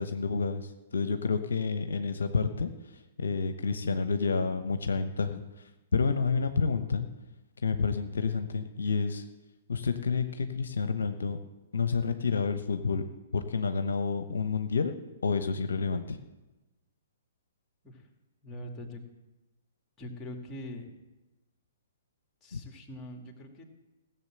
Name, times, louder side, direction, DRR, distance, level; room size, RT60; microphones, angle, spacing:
voice 1, 0.0-2.7 3.2-5.4 5.9-7.1 7.6-9.2 9.7-11.4 11.7-13.0 13.3-14.9 15.2-16.2, left 4 dB, 70° left, 9 dB, 0.8 m, -29 dB
voice 2, 18.4-19.0 20.0-20.9 22.4-23.6, left 1 dB, 15° left, 3 dB, 2.3 m, -42 dB
16.5 x 7.2 x 7.7 m, 1.1 s
figure-of-eight pair, 120°, 0 cm